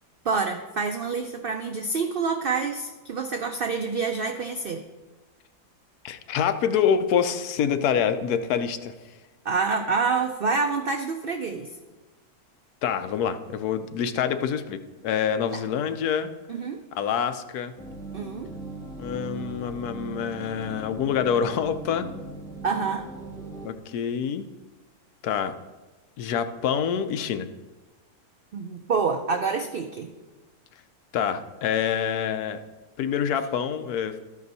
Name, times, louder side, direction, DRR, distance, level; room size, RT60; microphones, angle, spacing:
voice 1, 0.2-4.8 9.4-11.7 15.5-15.6 16.5-16.8 18.1-18.5 22.6-23.1 28.5-30.1, right 4 dB, 75° right, 5 dB, 0.5 m, -27 dB
voice 2, 6.0-8.9 12.8-14.8 15.0-16.3 16.9-17.7 19.0-22.1 23.6-24.4 25.2-25.5 26.2-27.5 31.1-32.6 33.0-34.2, left 8 dB, 80° left, 10 dB, 1.1 m, -26 dB
sound 1, 17.8-23.7, right 3 dB, 5° left, 0.4 m, -39 dB
13.0 x 5.2 x 4.0 m, 1.2 s
omnidirectional pair, 1.6 m